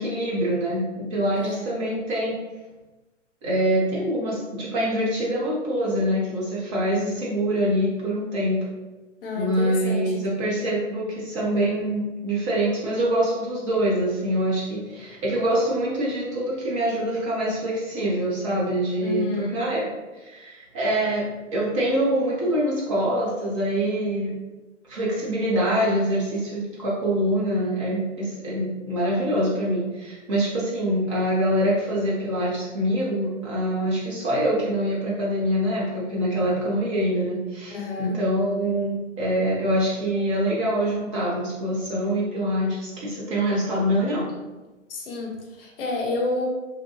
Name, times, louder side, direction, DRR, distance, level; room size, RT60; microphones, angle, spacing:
voice 1, 0.0-2.4 3.4-8.6 9.4-19.9 20.2-24.3 24.9-44.3, right 1 dB, 25° right, -6 dB, 0.5 m, -25 dB
voice 2, 9.2-10.3 19.0-19.6 37.7-38.2 44.9-46.5, left 3 dB, 50° left, 0 dB, 0.6 m, -30 dB
2.6 x 2.1 x 2.7 m, 1.2 s
figure-of-eight pair, 120°, 37 cm